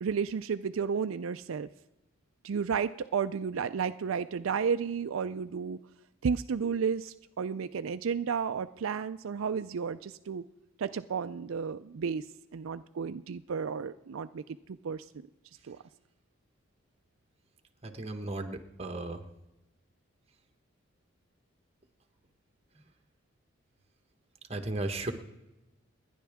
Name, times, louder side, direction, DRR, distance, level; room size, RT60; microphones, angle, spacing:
voice 1, 0.0-1.7 2.4-5.8 6.2-10.4 10.8-12.3 12.5-14.4 14.8-15.0 15.7-15.8, right 6 dB, 85° right, 11 dB, 0.4 m, -32 dB
voice 2, 17.8-19.2 24.5-25.1, right 2 dB, 30° right, 5 dB, 1.2 m, -35 dB
29.0 x 10.5 x 3.6 m, 0.98 s
head